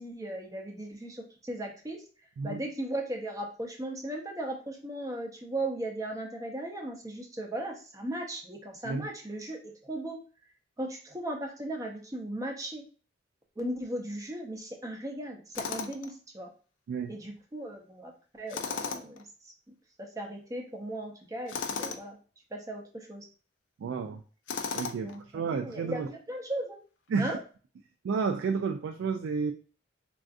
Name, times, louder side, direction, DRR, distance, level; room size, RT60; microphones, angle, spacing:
voice 1, 0.0-2.0 2.4-10.2 10.8-12.8 13.6-16.5 17.1-18.1 18.4-19.2 20.0-22.2 22.5-23.3 24.9-26.8 27.2-27.4, right 1 dB, 20° right, 2 dB, 0.5 m, -37 dB
Tools, 15.5-16.1 18.5-19.2 21.5-22.0 24.5-25.2, left 5 dB, 80° left, 0.4 m, -35 dB
voice 2, 23.8-24.2 24.7-26.1 27.1-27.3 28.0-29.5, right 5 dB, 85° right, 6 dB, 0.3 m, -31 dB
3.5 x 2.4 x 2.4 m, 0.37 s
head